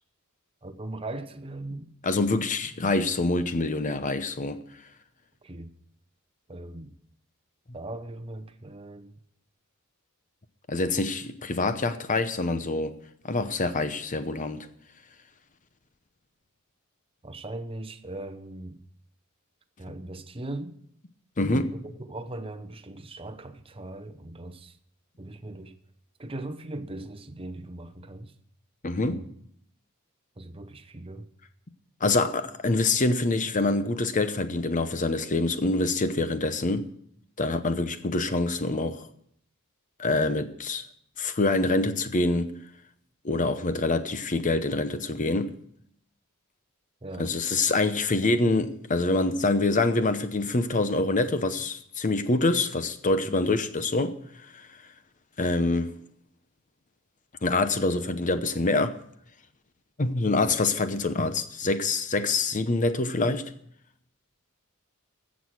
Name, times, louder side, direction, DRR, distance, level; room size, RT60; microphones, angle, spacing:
voice 1, 0.6-1.9 5.4-5.7 6.5-6.9 7.7-9.2 17.2-18.8 19.8-20.7 21.7-24.8 25.2-25.7 26.2-28.3 29.1-29.3 30.4-31.3 47.0-47.4 60.4-60.6, right 2 dB, 25° right, 0.8 m, -39 dB
voice 2, 2.0-4.6 10.7-12.9 13.2-14.6 21.4-21.7 28.8-29.2 32.0-36.9 37.4-39.1 40.0-40.9 41.2-42.5 43.2-45.5 47.2-54.7 55.4-55.9 57.4-59.0 60.0-63.5, left 2 dB, 35° left, 0.8 m, -26 dB
15.5 x 6.3 x 6.3 m
head